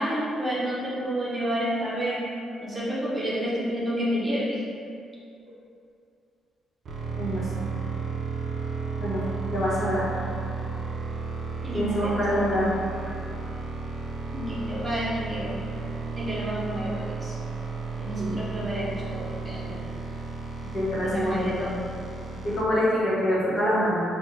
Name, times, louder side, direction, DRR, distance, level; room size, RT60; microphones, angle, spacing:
voice 1, 0.0-2.3 2.6-4.6 11.6-12.5 14.3-15.6 16.1-17.4 18.0-19.8 21.0-21.8, equal, 25° right, -7 dB, 0.6 m, -30 dB
sound 1, 6.8-22.6, right 4 dB, 60° right, 0.4 m, -33 dB
voice 2, 7.2-7.5 9.0-9.2 9.5-10.0 11.7-12.7 18.2-18.4 20.7-21.7 22.4-24.0, equal, 40° left, -9 dB, 1.1 m, -25 dB
3.4 x 2.1 x 2.6 m, 2.4 s
cardioid pair, 90°, 0 cm